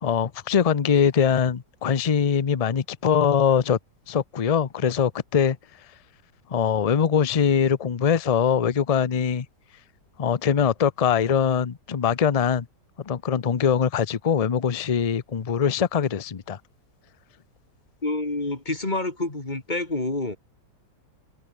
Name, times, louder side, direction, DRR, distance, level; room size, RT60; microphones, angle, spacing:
voice 1, 0.0-3.8 4.1-5.6 6.5-9.5 10.2-12.7 13.1-16.6, left 7 dB, 50° left, 0.4 m, -22 dB
voice 2, 18.0-20.4, left 2 dB, 25° left, 2.8 m, -28 dB
omnidirectional pair, 1.9 m